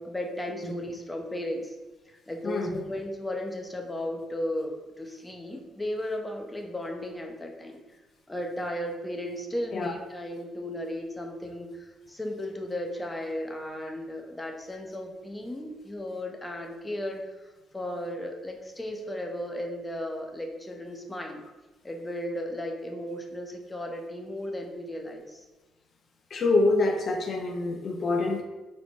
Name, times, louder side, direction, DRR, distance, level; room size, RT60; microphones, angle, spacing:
voice 1, 0.0-1.8 2.1-7.8 8.3-21.4 21.8-25.5, left 1 dB, 15° left, 2 dB, 0.6 m, -35 dB
voice 2, 26.3-28.4, left 3 dB, 55° left, 1 dB, 0.5 m, -25 dB
4.2 x 2.1 x 2.9 m, 1.2 s
hypercardioid pair, 50°, 0 cm